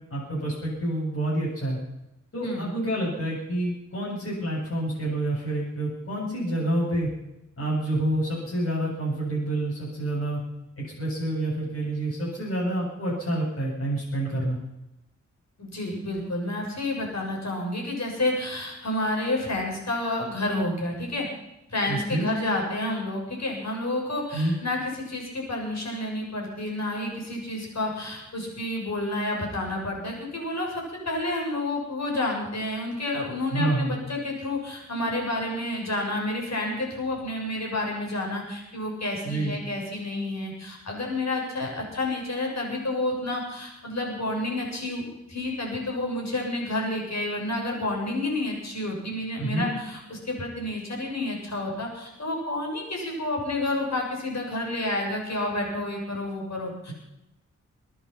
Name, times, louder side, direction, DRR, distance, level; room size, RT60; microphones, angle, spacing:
voice 1, 0.1-1.8 2.3-7.1 7.6-10.4 10.8-14.6 21.9-22.3 24.3-24.5 33.5-33.9 39.2-39.6 49.4-49.7, right 1 dB, 45° left, -7 dB, 7.8 m, -28 dB
voice 2, 15.6-21.3 21.7-56.9, left 2 dB, 65° left, 0 dB, 7.1 m, -30 dB
23.5 x 10.0 x 5.8 m, 0.90 s
wide cardioid pair, 75°, 30 cm